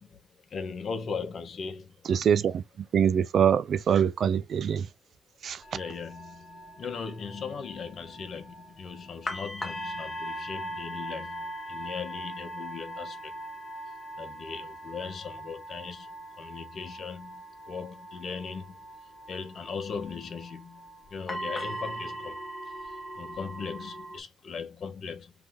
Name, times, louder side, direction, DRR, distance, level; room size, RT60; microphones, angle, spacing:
voice 1, 0.0-2.1 5.7-13.4 14.2-25.3, left 5 dB, 55° left, 1.3 m, -39 dB
voice 2, 2.0-4.9 5.4-5.6, right 8 dB, 60° right, 0.5 m, -24 dB
sound 1, 5.6-24.2, right 1 dB, 25° left, 1.4 m, -40 dB
3.5 x 3.5 x 3.7 m
cardioid pair, 90°, 0 cm